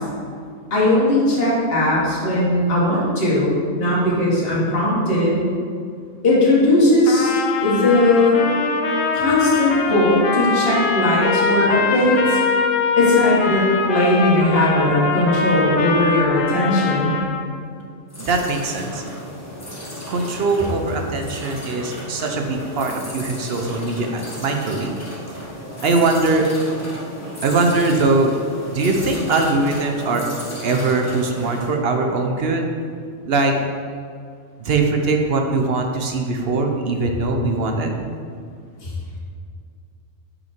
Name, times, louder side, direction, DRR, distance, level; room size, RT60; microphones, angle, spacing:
voice 1, 0.7-5.4 6.2-8.5 9.1-12.4 13.0-17.2 38.8-38.9, left 1 dB, 50° left, -8 dB, 1.8 m, -18 dB
Trumpet, 7.1-17.5, left 4 dB, 80° left, 1.1 m, -23 dB
sound 1, 18.1-31.7, equal, 15° left, 1.2 m, -34 dB
voice 2, 18.2-19.0 20.1-24.9 25.8-26.4 27.4-28.3 28.7-30.2 30.6-32.7 33.3-33.5 34.6-37.9, right 3 dB, 60° right, 3 dB, 0.8 m, -21 dB
5.6 x 5.5 x 4.4 m, 2.2 s
omnidirectional pair, 1.3 m